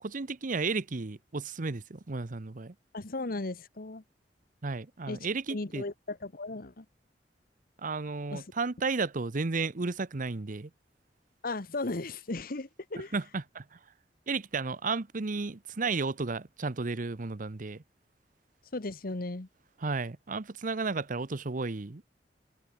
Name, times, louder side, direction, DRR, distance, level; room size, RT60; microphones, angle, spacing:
voice 1, 0.0-2.7 4.6-5.8 7.8-10.7 13.1-13.8 14.3-17.8 19.8-22.0, right 4 dB, 50° right, 0.8 m, -33 dB
voice 2, 2.9-4.0 5.1-6.8 8.3-8.4 11.4-13.1 18.7-19.5, left 2 dB, 55° left, 1.3 m, -36 dB
head